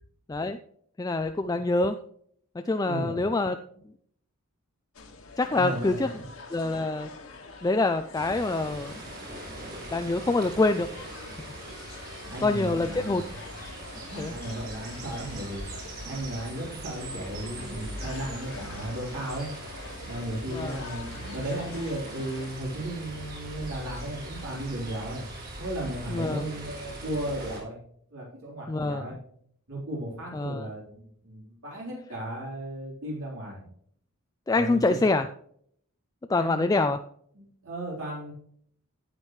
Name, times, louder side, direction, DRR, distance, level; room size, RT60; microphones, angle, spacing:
voice 1, 1.0-2.0 2.7-3.6 5.4-6.1 6.5-7.1 7.6-8.9 9.9-10.9 12.4-13.2 14.2-14.3 20.5-20.8 26.1-26.5 28.7-29.1 30.3-30.7 34.5-35.3 36.3-37.0, left 2 dB, 15° left, 7 dB, 0.3 m, -25 dB
voice 2, 2.8-3.2 5.5-6.3 12.2-13.3 14.0-15.6 16.0-19.5 20.0-25.2 25.6-27.8 28.1-29.2 29.7-33.7 34.5-35.0 36.3-36.8 37.4-38.3, right 1 dB, 75° right, -5 dB, 3.7 m, -35 dB
sound 1, 4.9-22.5, left 3 dB, 75° left, 1.8 m, -45 dB
sound 2, 8.1-27.6, right 1 dB, 45° right, 3.2 m, -41 dB
10.5 x 8.9 x 3.2 m, 0.65 s
head